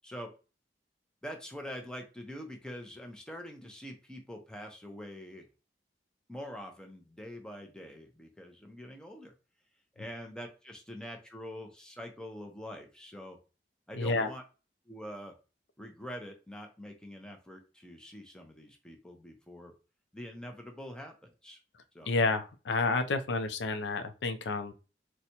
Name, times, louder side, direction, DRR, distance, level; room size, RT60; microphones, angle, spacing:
voice 1, 1.2-5.5 6.3-9.3 10.0-13.4 13.9-14.4 14.9-15.3 15.8-19.7 20.1-21.6 21.9-22.1, equal, 5° left, 3 dB, 0.6 m, -45 dB
voice 2, 13.9-14.3 22.1-24.7, left 3 dB, 90° left, 7 dB, 0.5 m, -30 dB
4.0 x 2.2 x 2.8 m, 0.32 s
head